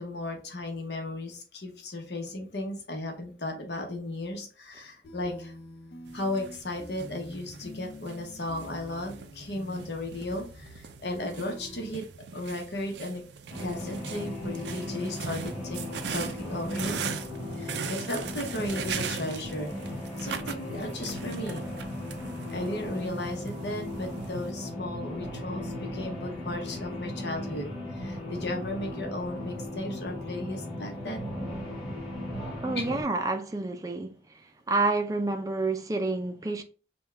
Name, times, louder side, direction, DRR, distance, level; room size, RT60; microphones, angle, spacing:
voice 1, 0.0-5.5 6.1-12.0 12.3-13.2 13.6-15.8 16.1-17.0 17.5-19.9 20.2-21.6 22.5-31.3 32.8-33.0, left 1 dB, 75° left, 1.0 m, -35 dB
sound 1, 5.0-11.9, left 1 dB, 55° left, 0.6 m, -46 dB
sound 2, 6.1-24.5, right 6 dB, 75° right, 0.4 m, -40 dB
sound 3, 13.5-33.0, left 1 dB, 25° left, 1.9 m, -37 dB
voice 2, 32.6-34.2 34.7-36.6, right 3 dB, 20° right, 0.4 m, -28 dB
5.3 x 2.3 x 3.3 m
head